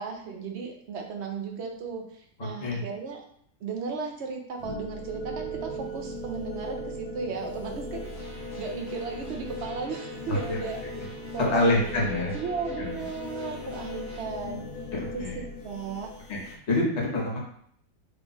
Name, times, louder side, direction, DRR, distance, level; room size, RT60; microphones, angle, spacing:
voice 1, 0.0-3.2 3.6-8.1 8.6-10.8 11.3-12.1 12.3-14.6 15.1-15.2 15.6-16.1, right 5 dB, 60° right, 2 dB, 0.8 m, -35 dB
voice 2, 2.4-2.8 10.3-10.6 11.4-12.4 12.8-12.9 14.9-15.4 16.3-17.4, left 1 dB, 50° left, -2 dB, 1.2 m, -27 dB
sound 1, 4.6-16.6, left 1 dB, 80° left, 0.4 m, -38 dB
sound 2, 8.0-14.2, equal, 25° right, 1.0 m, -49 dB
3.5 x 2.4 x 3.8 m, 0.63 s
omnidirectional pair, 1.5 m